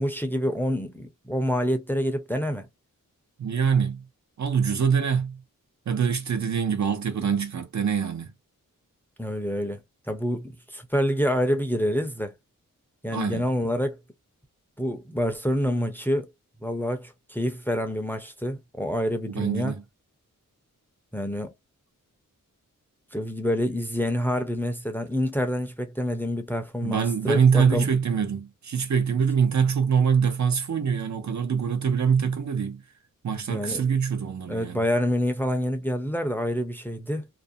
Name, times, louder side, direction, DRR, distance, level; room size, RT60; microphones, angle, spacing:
voice 1, 0.0-2.7 9.2-9.8 10.1-12.3 13.0-14.0 14.8-16.3 16.6-19.7 21.1-21.5 23.1-27.9 33.5-33.9 34.5-37.3, equal, 5° left, 0.6 m, -27 dB
voice 2, 3.4-4.0 4.4-5.4 5.9-8.3 13.1-13.4 19.3-19.8 26.8-32.8 33.2-34.8, right 6 dB, 60° right, 0.6 m, -24 dB
2.5 x 2.1 x 2.6 m
wide cardioid pair, 80°, 33 cm